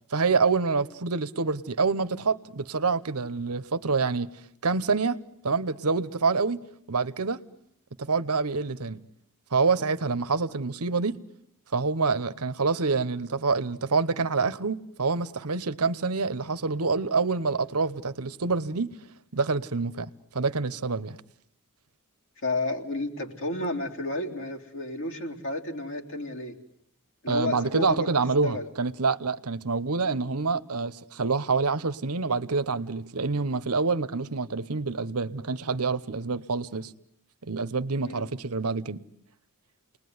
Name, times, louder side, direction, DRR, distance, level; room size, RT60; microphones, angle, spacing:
voice 1, 0.1-4.3 4.6-6.6 6.9-7.4 8.0-9.0 9.5-11.2 11.7-18.9 19.3-20.1 20.3-21.2 27.3-36.9 37.4-39.0, right 4 dB, 75° right, 1.1 m, -27 dB
voice 2, 22.4-26.6 27.2-28.1 28.4-28.7 38.0-38.3, left 2 dB, 60° left, 3.5 m, -31 dB
29.5 x 20.5 x 9.6 m
head